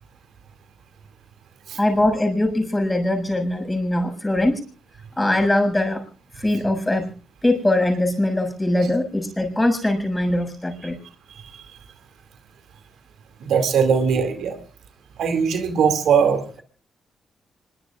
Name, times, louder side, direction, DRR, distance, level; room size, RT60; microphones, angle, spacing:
voice 1, 1.8-4.6 5.2-6.0 6.4-7.1 7.4-11.0, left 1 dB, 15° left, 5 dB, 7.0 m, -21 dB
voice 2, 13.4-14.6 15.2-16.6, right 6 dB, 80° right, 7 dB, 2.4 m, -20 dB
26.5 x 22.5 x 2.5 m, 0.38 s
supercardioid pair, 60°, 0 cm